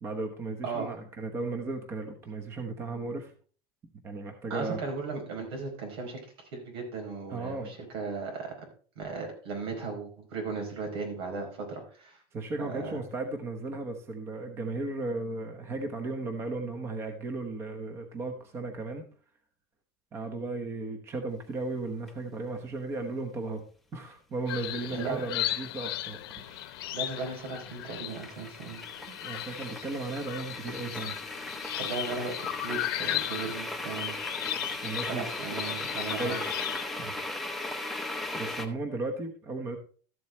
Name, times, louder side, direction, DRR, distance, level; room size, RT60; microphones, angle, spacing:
voice 1, 0.0-3.3 4.0-4.8 7.3-7.8 12.3-19.0 20.1-23.6 23.9-26.6 29.1-31.2 34.8-35.3 36.2-36.4 37.0-37.2 38.3-39.8, right 3 dB, 20° right, 5 dB, 1.0 m, -35 dB
voice 2, 4.5-6.2 6.5-8.5 9.0-12.2 12.6-13.0 24.9-25.2 26.9-28.8 31.7-34.2 35.1-36.4, right 4 dB, 85° right, 1 dB, 4.8 m, -36 dB
sound 1, 22.1-22.2 26.5-38.7, left 2 dB, ahead, 0.7 m, -38 dB
sound 2, 24.5-36.8, left 14 dB, 80° left, 0.9 m, -36 dB
13.0 x 7.8 x 3.2 m, 0.42 s
supercardioid pair, 170°, 12 cm